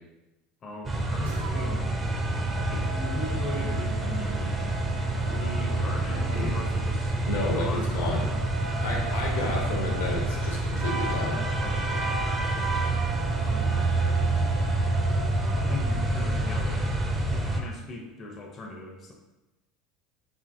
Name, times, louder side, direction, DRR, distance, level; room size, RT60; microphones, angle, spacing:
voice 1, 0.6-1.9 2.7-4.6 5.1-7.1 7.5-9.1 11.6-12.0 13.4-13.9 15.4-19.1, left 2 dB, 40° left, 0 dB, 0.5 m, -39 dB
sound 1, 0.8-17.6, right 2 dB, 25° right, 0.4 m, -27 dB
sound 2, 1.2-1.9 2.3-6.5 7.9-16.5, right 2 dB, 85° right, 0.4 m, -41 dB
voice 2, 6.1-6.5 7.3-8.2 8.8-11.4, left 2 dB, 85° left, -1 dB, 0.7 m, -31 dB
2.7 x 2.6 x 2.5 m, 1.1 s
hypercardioid pair, 85°, 0 cm